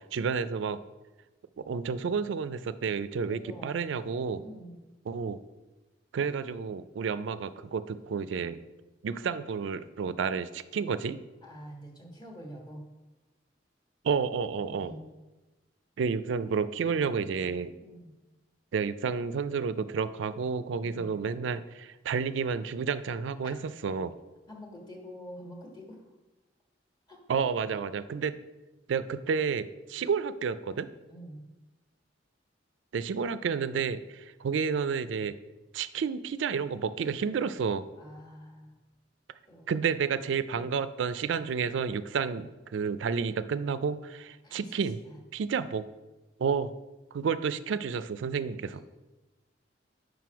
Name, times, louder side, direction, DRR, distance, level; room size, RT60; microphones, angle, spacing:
voice 1, 0.1-0.8 1.6-4.4 5.1-5.4 6.1-8.6 9.0-11.2 14.0-14.9 16.0-17.7 18.7-24.1 27.3-28.4 28.9-30.9 32.9-35.4 35.7-37.9 39.7-45.0 45.3-45.8 46.4-46.7 47.1-48.8, right 6 dB, 75° right, 13 dB, 0.4 m, -30 dB
voice 2, 3.3-3.7 4.4-4.8 11.4-12.8 14.6-15.1 17.8-18.1 20.7-21.2 23.4-23.6 24.5-26.0 27.1-27.8 31.1-31.4 38.0-38.8 39.5-39.7 44.4-44.8 45.0-45.2, equal, 20° left, 0 dB, 1.3 m, -46 dB
6.0 x 5.1 x 4.6 m, 1.1 s
head